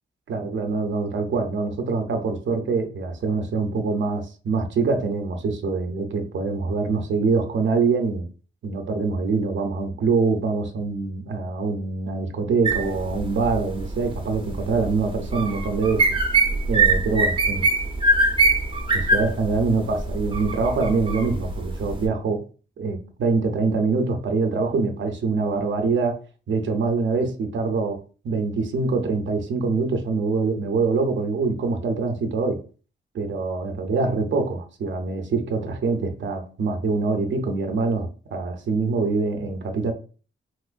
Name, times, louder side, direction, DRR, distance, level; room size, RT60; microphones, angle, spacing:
voice 1, 0.3-8.3 8.6-16.1 16.7-17.6 18.9-22.4 22.8-26.2 26.5-32.6 33.1-39.9, right 4 dB, 65° right, 0.6 m, -24 dB
sound 1, 12.6-22.0, right 3 dB, 25° right, 0.6 m, -23 dB
3.1 x 2.9 x 2.4 m
wide cardioid pair, 115°, 21 cm